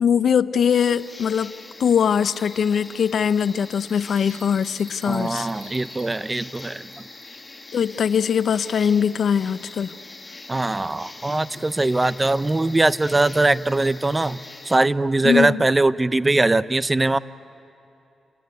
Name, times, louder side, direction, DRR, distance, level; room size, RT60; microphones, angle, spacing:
voice 1, 0.0-1.5 1.8-5.5 7.7-9.9 15.2-15.6, left 7 dB, 70° left, 15 dB, 0.6 m, -21 dB
sound 1, 0.7-14.8, left 2 dB, 25° left, 1.3 m, -42 dB
Bell, 3.7-7.4, right 2 dB, 75° right, 5.1 m, -48 dB
voice 2, 5.1-6.8 10.5-17.2, right 2 dB, 20° right, 16 dB, 0.6 m, -21 dB
29.0 x 19.5 x 9.6 m, 2.8 s
cardioid pair, 70°, 0 cm